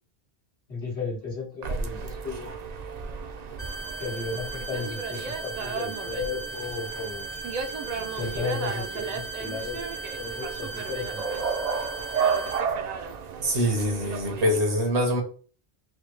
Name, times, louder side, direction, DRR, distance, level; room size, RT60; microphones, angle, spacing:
voice 1, 0.7-2.6 4.0-7.3 8.2-9.8 10.2-11.2, left 5 dB, 80° left, -6 dB, 2.4 m, -34 dB
sound 1, 1.6-14.6, right 6 dB, 50° right, 0.5 m, -33 dB
sound 2, 3.6-12.6, right 2 dB, 55° left, 1.5 m, -38 dB
voice 2, 13.4-15.2, equal, 85° right, 1 dB, 1.4 m, -24 dB
4.9 x 2.2 x 3.2 m, 0.39 s
omnidirectional pair, 1.1 m